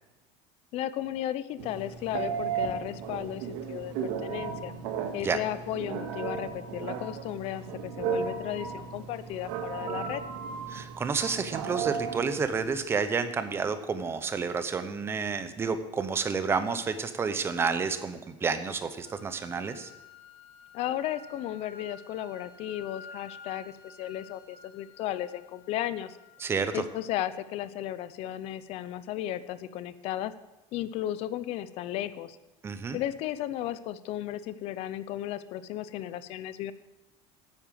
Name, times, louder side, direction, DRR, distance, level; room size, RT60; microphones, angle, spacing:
voice 1, 0.7-4.7 5.1-10.2 20.7-26.2 26.7-30.3 30.7-32.4 32.9-36.7, left 12 dB, 45° left, 14 dB, 0.6 m, -34 dB
Telephone, 1.6-12.8, right 6 dB, 70° right, 1.9 m, -35 dB
voice 2, 10.7-19.9 26.4-26.8 32.6-33.0, right 5 dB, 15° right, 10 dB, 0.7 m, -30 dB
sound 1, 19.0-27.0, left 3 dB, 80° left, 1.8 m, -51 dB
9.8 x 8.9 x 7.5 m, 1.1 s
cardioid pair, 175°, 15 cm